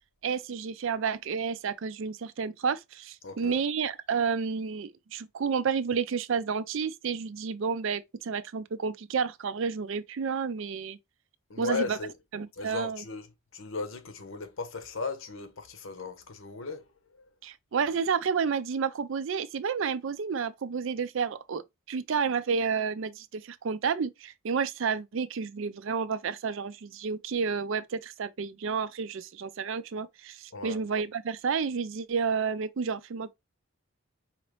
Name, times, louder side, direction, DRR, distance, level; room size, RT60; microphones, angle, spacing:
voice 1, 0.2-11.0 11.6-12.0 12.3-13.0 17.4-33.3, right 6 dB, 60° right, 0.4 m, -30 dB
voice 2, 3.2-3.6 11.5-12.1 12.5-13.3 13.5-16.8 17.2-17.3 30.5-30.8, left 4 dB, 65° left, 0.8 m, -36 dB
4.9 x 3.0 x 3.1 m
head